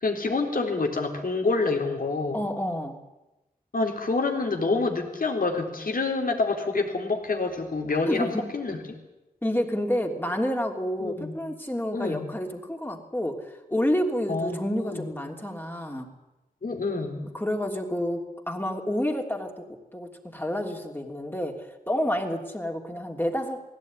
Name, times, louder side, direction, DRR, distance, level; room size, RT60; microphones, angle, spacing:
voice 1, 0.0-2.5 3.7-9.0 11.0-11.4 11.9-12.3 14.3-15.1 16.6-17.3, left 3 dB, 75° left, 2 dB, 3.8 m, -27 dB
voice 2, 2.3-3.0 8.1-8.4 9.4-16.1 17.3-19.6 19.9-23.6, equal, 15° left, 2 dB, 3.2 m, -29 dB
20.0 x 17.0 x 9.7 m, 0.99 s
wide cardioid pair, 75°, 15 cm